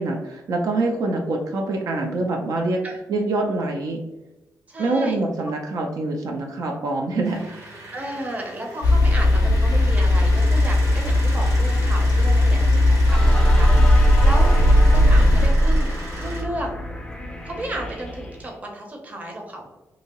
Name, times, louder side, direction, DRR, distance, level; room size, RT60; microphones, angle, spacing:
voice 1, 0.0-2.8 3.1-4.0 4.8-7.5 14.5-14.6, right 2 dB, 65° right, 1 dB, 0.4 m, -25 dB
voice 2, 4.7-5.2 7.9-14.5 14.9-15.9 16.2-16.7 17.4-19.7, right 1 dB, 25° right, 1 dB, 0.7 m, -33 dB
sound 1, 7.2-16.4, right 1 dB, 50° right, 1.0 m, -38 dB
sound 2, 8.8-15.5, left 2 dB, 75° left, 0.4 m, -18 dB
sound 3, 13.1-18.5, right 1 dB, 10° left, 0.4 m, -20 dB
2.7 x 2.6 x 2.9 m, 1.0 s
wide cardioid pair, 145°, 6 cm